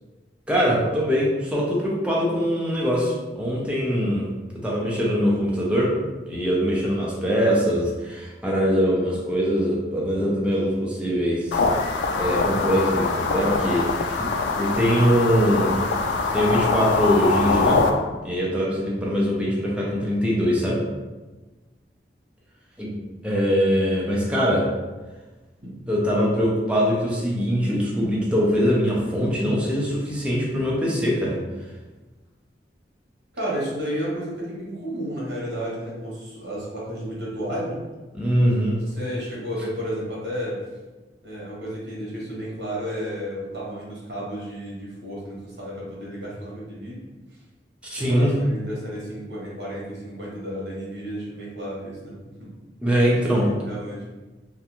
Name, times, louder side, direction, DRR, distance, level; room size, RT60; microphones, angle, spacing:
voice 1, 0.5-4.3 4.6-5.9 6.3-11.6 12.2-15.8 16.3-17.8 18.2-20.8 22.8-23.0 23.2-24.7 25.9-31.4 38.1-38.9 47.8-48.4 52.8-53.5, equal, 5° right, -5 dB, 0.5 m, -22 dB
sound 1, 11.5-17.9, left 4 dB, 85° left, 0.3 m, -23 dB
voice 2, 25.6-25.9 33.3-37.8 38.9-40.6 41.2-47.0 47.3-47.4 48.0-52.5 53.1-53.2 53.4-54.1, equal, 75° right, -5 dB, 1.0 m, -32 dB
2.5 x 2.2 x 2.9 m, 1.2 s
head